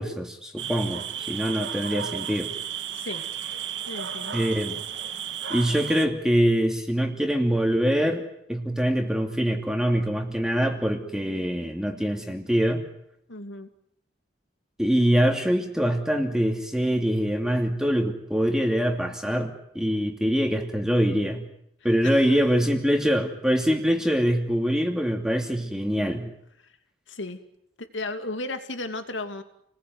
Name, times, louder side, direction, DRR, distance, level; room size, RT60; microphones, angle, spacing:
voice 1, 0.0-2.5 4.3-4.8 5.5-8.2 8.5-12.8 14.8-21.4 21.8-26.3, equal, 5° right, 3 dB, 2.7 m, -24 dB
sound 1, 0.6-6.1, right 8 dB, 75° right, 2.0 m, -33 dB
voice 2, 2.9-3.3 3.9-4.3 13.3-13.7 22.0-22.4 27.1-27.4 27.8-29.4, left 2 dB, 85° left, 8 dB, 2.7 m, -34 dB
29.5 x 20.5 x 9.5 m, 0.75 s
head